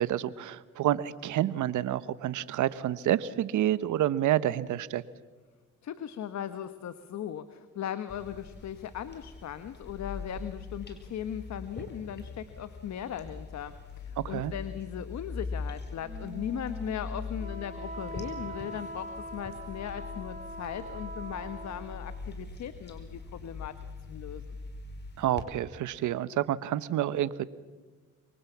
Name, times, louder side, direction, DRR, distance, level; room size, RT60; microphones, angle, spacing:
voice 1, 0.0-5.0 14.2-14.5 25.2-27.4, right 12 dB, 75° right, 16 dB, 1.1 m, -28 dB
voice 2, 5.8-23.8 24.0-24.6, left 9 dB, 65° left, 11 dB, 1.3 m, -38 dB
sound 1, 8.1-25.4, left 4 dB, 35° left, 5.1 m, -42 dB
Wind instrument woodwind instrument, 16.0-22.2, right 2 dB, 25° right, 1.9 m, -43 dB
26.0 x 23.5 x 7.3 m, 1.3 s
cardioid pair, 90°, 30 cm